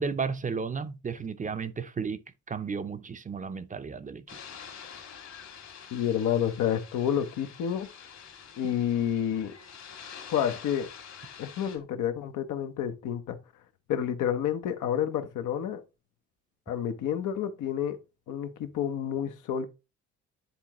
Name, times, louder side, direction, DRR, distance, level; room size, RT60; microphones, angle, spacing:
voice 1, 0.0-2.2 2.5-4.3, right 5 dB, 25° right, 0.6 m, -33 dB
sound 1, 4.3-11.8, left 7 dB, 60° left, 2.0 m, -47 dB
voice 2, 5.9-7.9 8.6-9.5 10.3-10.9 11.4-13.4 13.9-15.8 16.7-18.0 18.3-19.7, left 9 dB, 80° left, 0.9 m, -29 dB
9.7 x 3.7 x 3.0 m
cardioid pair, 90°, 30 cm